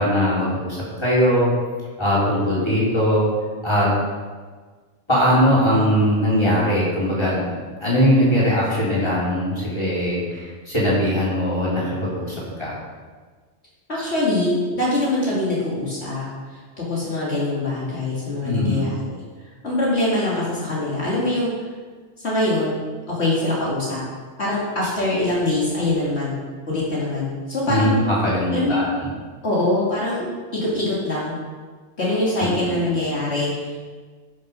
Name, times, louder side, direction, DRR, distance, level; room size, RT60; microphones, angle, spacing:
voice 1, 0.0-1.5 2.0-3.3 3.6-3.9 5.1-7.5 7.8-12.8 18.4-18.9 27.7-28.9 32.4-32.8, equal, 20° left, -8 dB, 3.9 m, -20 dB
voice 2, 13.9-19.2 19.6-21.5 22.2-22.8 23.1-24.0 24.4-26.4 26.7-28.0 28.5-28.9 29.4-30.3 30.5-31.4 32.0-33.9, left 2 dB, 60° left, -7 dB, 2.8 m, -23 dB
13.5 x 6.3 x 5.4 m, 1.5 s
omnidirectional pair, 1.2 m